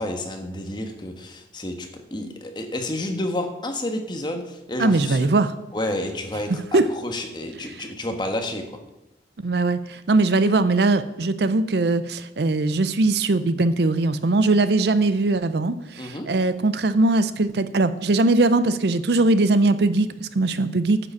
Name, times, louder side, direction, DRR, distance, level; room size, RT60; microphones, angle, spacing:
voice 1, 0.0-5.3 5.7-8.6 16.0-16.3, left 1 dB, 25° left, 4 dB, 1.3 m, -30 dB
voice 2, 4.8-5.5 6.7-6.8 9.4-21.0, right 2 dB, 60° right, 13 dB, 0.5 m, -20 dB
9.6 x 6.8 x 7.1 m, 0.92 s
head